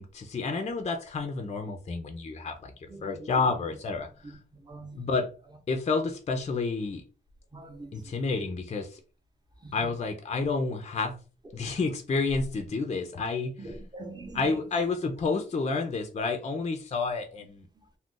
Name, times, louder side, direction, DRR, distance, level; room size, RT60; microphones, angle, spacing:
voice 1, 0.0-4.4 5.0-5.3 5.7-7.0 7.9-9.0 9.7-11.2 11.5-13.5 14.3-17.7, left 4 dB, 35° left, 0.4 m, -30 dB
voice 2, 2.8-3.8 4.2-5.1 7.5-8.4 9.6-9.9 13.6-14.7 17.7-18.0, right 2 dB, 20° right, 0.7 m, -44 dB
2.4 x 2.1 x 3.7 m
wide cardioid pair, 120°, 19 cm